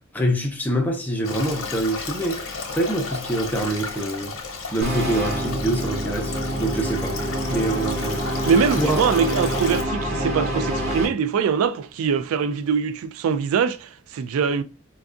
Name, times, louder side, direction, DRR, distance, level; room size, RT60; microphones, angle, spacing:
voice 1, 0.1-4.4 4.7-8.2 8.8-9.0, right 1 dB, 10° left, 0.6 m, -25 dB
Stream, 1.2-9.8, left 4 dB, 75° left, 0.9 m, -33 dB
sound 1, 4.8-11.1, equal, 30° right, 1.4 m, -26 dB
voice 2, 8.5-14.6, right 6 dB, 80° right, 0.3 m, -23 dB
4.4 x 2.3 x 2.5 m
head